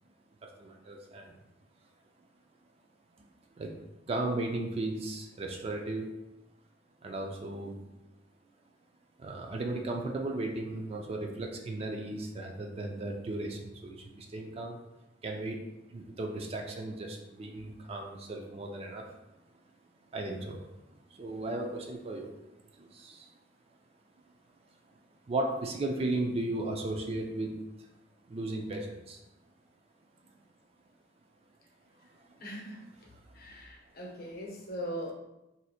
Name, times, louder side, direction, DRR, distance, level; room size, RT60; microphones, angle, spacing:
voice 1, 0.4-1.4 3.6-3.8 4.1-6.2 7.0-8.0 9.2-14.8 15.2-15.6 15.9-19.1 20.1-20.6 21.1-22.4 22.8-23.3 25.3-27.9 28.3-29.2 32.1-32.5 33.0-33.2 34.2-34.3, right 2 dB, 30° right, 2 dB, 0.4 m, -36 dB
voice 2, 32.4-32.8 33.4-35.1, equal, 50° left, -1 dB, 0.7 m, -40 dB
2.7 x 2.4 x 4.1 m, 0.93 s
head